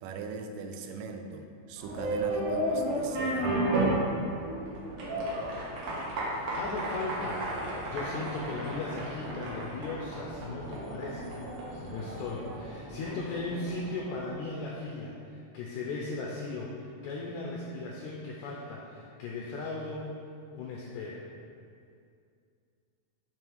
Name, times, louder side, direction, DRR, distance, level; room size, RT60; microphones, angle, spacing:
voice 1, 0.0-3.5, right 4 dB, 85° right, 5 dB, 2.1 m, -38 dB
sound 1, 1.8-14.5, right 1 dB, 60° right, 1.6 m, -33 dB
voice 2, 6.5-7.5 7.9-20.1 20.5-21.2, left 3 dB, 80° left, -3 dB, 1.7 m, -37 dB
6.8 x 3.2 x 4.7 m, 2.3 s
omnidirectional pair, 3.7 m